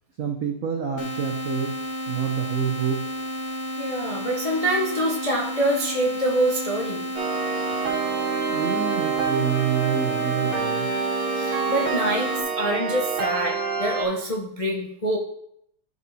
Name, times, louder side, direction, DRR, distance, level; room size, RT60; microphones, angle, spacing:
voice 1, 0.2-1.8 2.1-3.1 8.5-11.0, right 8 dB, 80° right, 3 dB, 0.7 m, -27 dB
sound 1, 1.0-12.4, equal, 50° left, 0.8 m, -32 dB
voice 2, 3.8-7.1 11.3-15.2, right 1 dB, 70° left, -2 dB, 0.3 m, -25 dB
sound 2, 7.1-14.0, right 5 dB, 65° right, 3.0 m, -27 dB
12.0 x 4.3 x 4.1 m, 0.72 s
omnidirectional pair, 2.4 m